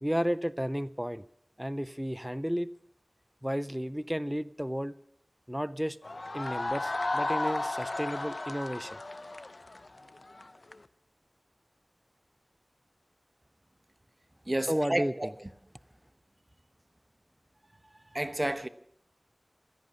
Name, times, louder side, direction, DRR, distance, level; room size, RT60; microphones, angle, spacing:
voice 1, 0.0-1.3 1.6-2.7 3.4-5.0 5.5-6.0 6.3-9.0 14.7-15.1, equal, 5° right, 0.5 m, -32 dB
sound 1, 6.0-10.8, left 2 dB, 55° left, 0.7 m, -34 dB
voice 2, 14.5-15.3 18.1-18.7, right 1 dB, 30° right, 0.9 m, -30 dB
16.0 x 13.5 x 5.9 m
wide cardioid pair, 50°, 0 cm